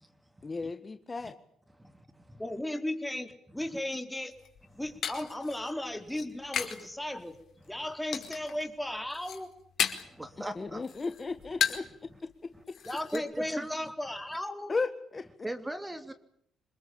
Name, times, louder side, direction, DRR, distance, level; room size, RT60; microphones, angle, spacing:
voice 1, 0.4-1.3 10.6-11.8 14.7-15.3, left 4 dB, 30° left, 9 dB, 1.7 m, -34 dB
voice 2, 1.8-2.4 10.0-10.8 12.5-12.6 13.1-13.8 15.4-16.1, right 1 dB, 15° right, 9 dB, 3.0 m, -39 dB
voice 3, 2.4-4.4 4.7-7.4 7.7-9.5 12.8-14.7, left 1 dB, 5° left, 6 dB, 4.4 m, -35 dB
sound 1, 4.3-6.9 7.2-7.7 8.1-8.6 9.0-10.2 10.6-12.0 12.3-12.4 12.7-13.2, left 8 dB, 65° left, 4.8 m, -34 dB
27.5 x 21.0 x 8.9 m, 0.69 s
cardioid pair, 90°, 0 cm